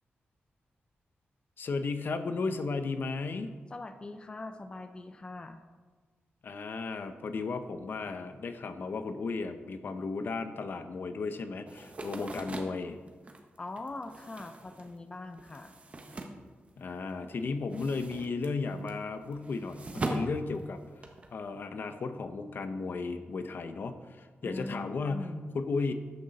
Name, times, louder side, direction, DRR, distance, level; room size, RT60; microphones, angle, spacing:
voice 1, 1.6-3.5 6.4-13.0 16.8-20.8 21.3-25.9, left 4 dB, 55° left, 9 dB, 0.8 m, -34 dB
voice 2, 3.7-5.6 13.6-15.7 24.4-25.6, left 2 dB, 25° left, 8 dB, 0.5 m, -42 dB
sound 1, 11.7-17.1 17.4-21.3, right 2 dB, 30° right, 1.2 m, -41 dB
13.0 x 9.7 x 4.1 m, 1.4 s
wide cardioid pair, 155°, 4 cm